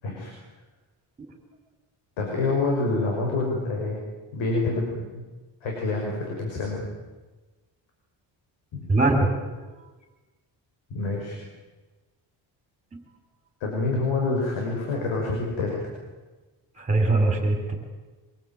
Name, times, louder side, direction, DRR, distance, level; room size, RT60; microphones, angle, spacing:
voice 1, 2.2-4.0 4.3-5.2 5.6-6.8 8.7-8.8 10.9-11.4 13.6-15.8, left 3 dB, 90° left, -1 dB, 6.1 m, -27 dB
voice 2, 8.9-9.3 9.8-9.9 12.9-13.0 16.8-17.7, right 2 dB, 15° right, 4 dB, 4.4 m, -22 dB
25.0 x 21.0 x 9.2 m, 1.3 s
cardioid pair, 165°, 46 cm